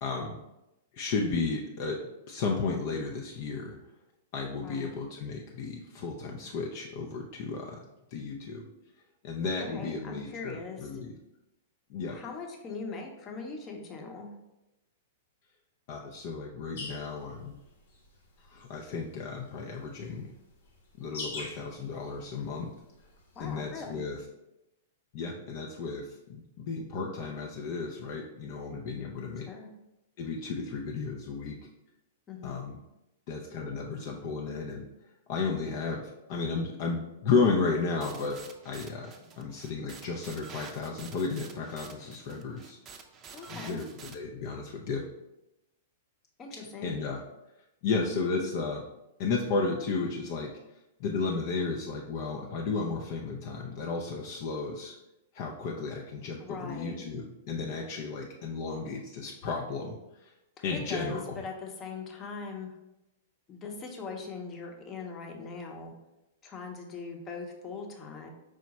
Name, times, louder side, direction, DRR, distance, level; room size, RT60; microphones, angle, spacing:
voice 1, 0.0-0.4 0.9-2.0 2.3-3.8 4.3-7.8 8.1-8.7 9.2-11.1 11.9-12.2 15.9-17.6 18.5-20.3 21.0-22.7 23.4-24.2 25.1-29.5 30.2-31.6 32.4-32.8 33.3-34.9 35.3-38.4 38.6-42.8 43.4-45.0 46.8-47.2 47.8-48.8 49.2-50.5 51.0-54.9 55.3-60.0 60.6-61.4, left 4 dB, 50° left, 0 dB, 0.5 m, -33 dB
voice 2, 4.6-4.9 9.6-11.0 12.1-14.4 23.3-24.0 29.5-29.7 32.3-32.6 43.3-43.8 46.4-46.9 56.4-57.1 60.6-62.8 63.5-65.9 66.4-68.3, left 4 dB, 30° left, 1 dB, 0.8 m, -41 dB
sound 1, 16.8-24.2, left 3 dB, 70° left, 1.2 m, -46 dB
sound 2, 38.0-44.1, right 5 dB, 30° right, 0.5 m, -48 dB
4.8 x 2.1 x 4.1 m, 0.93 s
hypercardioid pair, 115°, 0 cm